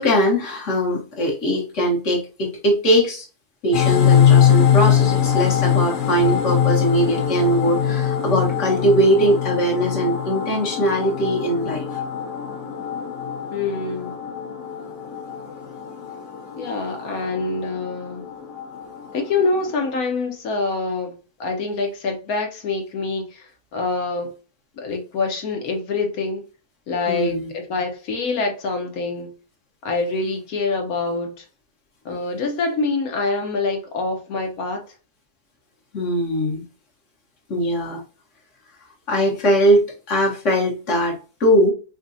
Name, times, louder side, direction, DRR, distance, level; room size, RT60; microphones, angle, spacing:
voice 1, 0.0-3.2 3.6-11.9 27.1-27.5 35.9-36.6 37.5-38.0 39.1-41.7, equal, 50° left, 1.5 m, -20 dB
sound 1, 3.7-20.0, left 9 dB, 85° left, 1.4 m, -22 dB
voice 2, 13.5-14.1 16.5-18.2 19.1-21.1 21.4-24.3 24.8-26.4 26.9-29.3 29.8-31.4 32.0-34.8, left 3 dB, 65° left, 1.3 m, -25 dB
5.1 x 2.4 x 2.6 m
omnidirectional pair, 1.7 m